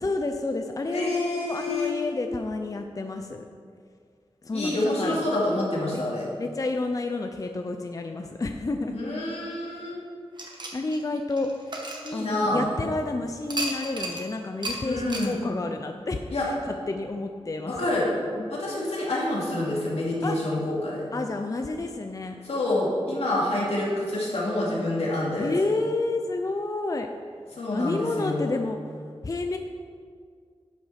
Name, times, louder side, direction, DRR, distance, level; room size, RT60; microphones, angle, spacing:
voice 1, 0.0-3.5 4.4-5.3 5.9-6.0 6.4-9.0 10.7-17.9 18.4-18.5 20.2-20.4 21.1-22.4 25.4-27.1 27.7-28.9 29.2-29.6, left 2 dB, 35° left, 5 dB, 0.5 m, -30 dB
voice 2, 0.9-1.9 4.5-6.3 8.9-10.0 12.0-12.7 14.8-15.4 16.3-16.5 17.7-18.1 18.5-21.1 22.4-25.5 27.6-28.5, left 1 dB, 80° left, -5 dB, 2.7 m, -27 dB
sound 1, 10.4-12.8 13.5-14.3 14.6-14.8 15.1-15.3, right 2 dB, 45° right, 1.4 m, -34 dB
11.0 x 5.8 x 5.8 m, 2.1 s
wide cardioid pair, 95°, 10 cm